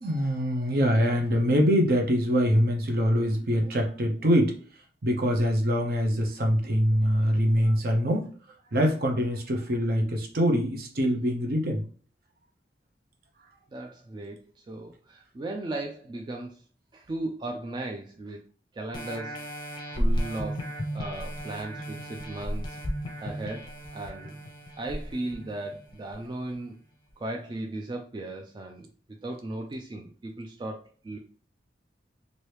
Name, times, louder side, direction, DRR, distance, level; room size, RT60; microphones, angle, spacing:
voice 1, 0.0-4.6 5.0-8.3 8.7-11.8, equal, 55° right, 2 dB, 0.7 m, -24 dB
voice 2, 13.7-16.6 16.9-18.4 18.7-19.4 19.9-20.7 20.9-22.8 23.2-24.4 24.8-26.8 27.2-28.9 29.2-31.2, right 2 dB, 25° right, 2 dB, 0.3 m, -36 dB
sound 1, 18.9-26.1 26.7-26.8, equal, 25° left, 0.6 m, -33 dB
3.0 x 2.6 x 3.2 m, 0.41 s
head